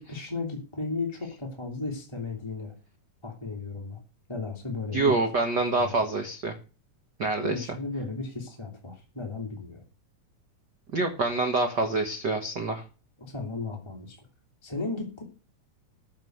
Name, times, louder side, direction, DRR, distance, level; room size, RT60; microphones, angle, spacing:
voice 1, 0.0-2.7 3.2-4.0 4.3-5.1 5.7-5.9 7.4-9.8 13.2-14.3 14.6-15.2, left 3 dB, 10° left, 0 dB, 2.2 m, -35 dB
voice 2, 4.9-6.5 7.2-7.7 10.9-12.8, right 3 dB, 45° right, 5 dB, 1.4 m, -26 dB
14.0 x 5.6 x 7.8 m, 0.35 s
omnidirectional pair, 3.7 m